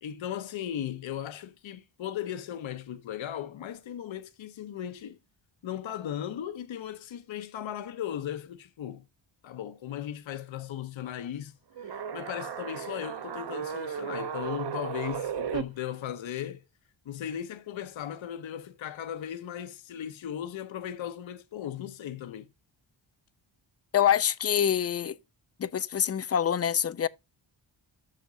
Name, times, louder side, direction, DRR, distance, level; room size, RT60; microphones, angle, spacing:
voice 1, 0.0-5.2 5.6-9.0 9.4-16.6 17.1-22.5, left 10 dB, 75° left, 0.7 m, -37 dB
sound 1, 11.8-15.6, right 8 dB, 55° right, 0.9 m, -35 dB
voice 2, 23.9-25.2 25.6-27.1, left 9 dB, 35° left, 0.4 m, -25 dB
7.6 x 6.5 x 3.8 m
wide cardioid pair, 130°, 48 cm